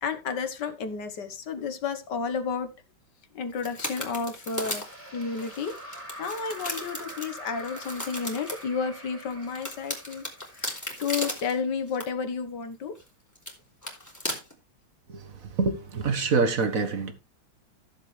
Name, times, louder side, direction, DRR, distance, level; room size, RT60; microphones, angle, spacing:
voice 1, 0.0-2.7 3.3-4.8 5.1-10.3 10.5-13.0, left 5 dB, 55° left, 1.8 m, -32 dB
sound 1, 3.5-8.6 9.2-11.5 11.9-12.0 13.0-13.1 13.4-13.5 13.8-14.5, left 1 dB, 10° left, 3.4 m, -36 dB
sound 2, 4.3-11.6, right 1 dB, 15° right, 2.7 m, -45 dB
voice 2, 15.6-17.1, right 4 dB, 45° right, 1.7 m, -25 dB
14.5 x 7.6 x 3.3 m
omnidirectional pair, 2.3 m